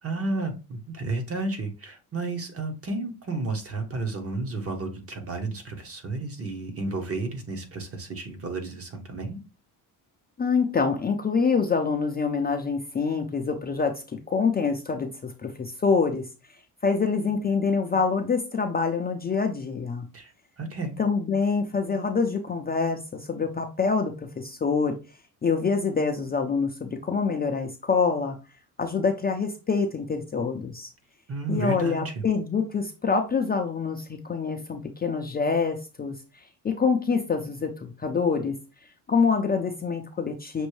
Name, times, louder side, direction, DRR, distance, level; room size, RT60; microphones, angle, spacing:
voice 1, 0.0-9.4 20.1-20.9 31.3-32.2, right 2 dB, 35° right, 1.0 m, -32 dB
voice 2, 10.4-16.2 16.8-20.0 21.0-24.9 25.4-28.4 28.8-30.9 31.5-38.5 39.1-40.7, left 5 dB, 25° left, 0.5 m, -26 dB
6.1 x 2.6 x 3.1 m
cardioid pair, 130°, 40 cm